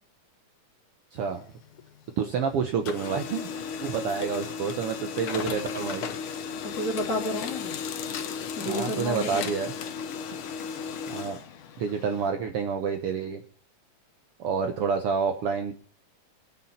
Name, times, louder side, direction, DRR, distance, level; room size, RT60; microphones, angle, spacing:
voice 1, 1.1-1.4 2.2-3.5 3.8-6.4 8.7-9.7 11.1-11.4 11.8-13.4 14.4-15.7, right 6 dB, 65° right, 7 dB, 1.5 m, -28 dB
Printer, 1.2-2.4 2.7-12.3, left 6 dB, 60° left, 1.5 m, -35 dB
voice 2, 6.6-7.7 8.6-9.5, left 1 dB, 25° left, 1 dB, 2.5 m, -31 dB
24.5 x 8.6 x 4.2 m, 0.41 s
omnidirectional pair, 3.4 m